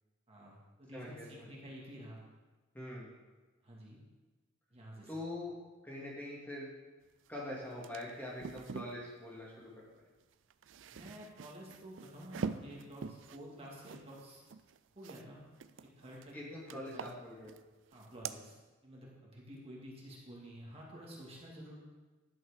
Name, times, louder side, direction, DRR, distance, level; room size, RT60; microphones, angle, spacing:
voice 1, 0.3-2.2 3.6-4.0 4.7-5.1 10.9-14.4 15.0-15.4 16.0-16.3 16.7-17.0 17.9-18.6 18.8-21.8, equal, 30° right, -4 dB, 2.5 m, -50 dB
voice 2, 0.9-1.5 2.7-3.1 5.1-5.5 5.8-6.7 7.3-10.0 16.3-17.6, left 1 dB, 10° left, -5 dB, 2.4 m, -44 dB
sound 1, 7.3-7.4 7.6-9.0 10.3-15.2 15.6-16.3 16.7-17.6 17.9-18.4, right 5 dB, 65° right, 0.5 m, -45 dB
11.5 x 6.3 x 6.5 m, 1.2 s
head